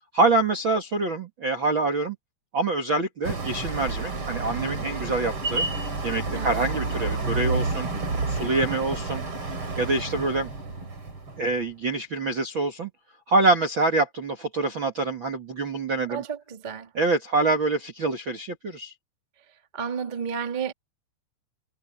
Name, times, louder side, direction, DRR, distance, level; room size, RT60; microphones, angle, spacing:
voice 1, 0.1-2.1 2.5-5.6 6.0-7.9 8.3-9.2 9.8-10.5 11.4-12.9 13.3-16.2 16.9-18.9, right 3 dB, 65° right, 1.1 m, -25 dB
sound 1, 3.2-11.6, right 3 dB, 30° right, 4.1 m, -30 dB
voice 2, 6.3-6.7 16.1-16.9 19.7-20.7, right 6 dB, 50° right, 0.5 m, -32 dB
omnidirectional pair, 5.4 m